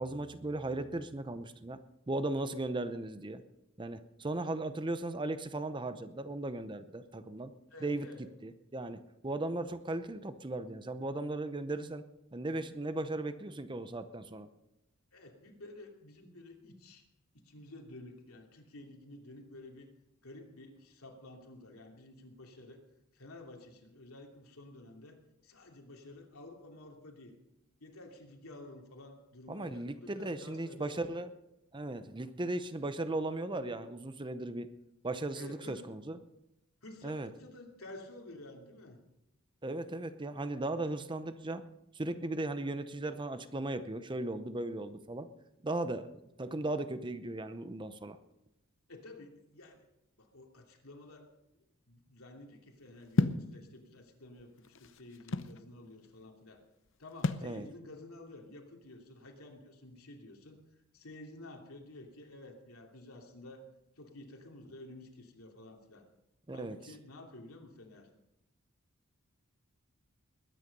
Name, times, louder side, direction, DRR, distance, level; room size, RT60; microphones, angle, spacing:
voice 1, 0.0-1.8 2.1-3.4 3.8-7.5 7.8-8.1 8.4-12.0 12.3-14.5 29.5-31.3 31.7-34.7 35.0-36.2 37.0-37.3 39.6-41.6 41.9-45.3 45.6-48.2 57.4-57.7 66.5-66.8, right 2 dB, 20° right, 11 dB, 0.7 m, -37 dB
voice 2, 7.7-8.2 15.1-17.0 17.3-19.9 20.2-22.8 23.1-27.3 27.8-31.1 35.3-35.9 36.8-39.0 48.9-49.8 50.2-56.6 57.0-60.6 60.9-63.7 64.0-66.1 66.5-68.1, left 2 dB, 85° left, 2 dB, 2.8 m, -51 dB
sound 1, 53.2-53.5 54.4-55.6 57.2-57.5, left 2 dB, 60° left, 0.7 m, -30 dB
21.0 x 9.7 x 5.4 m, 0.89 s
head